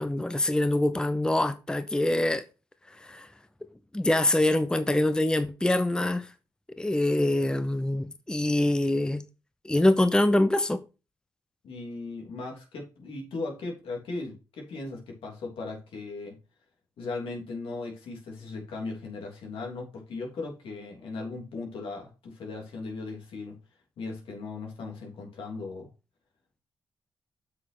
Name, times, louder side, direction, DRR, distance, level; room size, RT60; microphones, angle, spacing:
voice 1, 0.0-2.4 3.0-3.3 3.9-6.3 6.8-9.2 9.7-10.8, left 1 dB, 10° left, 0.7 m, -24 dB
voice 2, 11.6-16.4 17.0-23.5 24.0-25.9, left 3 dB, 80° left, 3.2 m, -37 dB
7.6 x 6.1 x 4.3 m
cardioid pair, 70°, 9 cm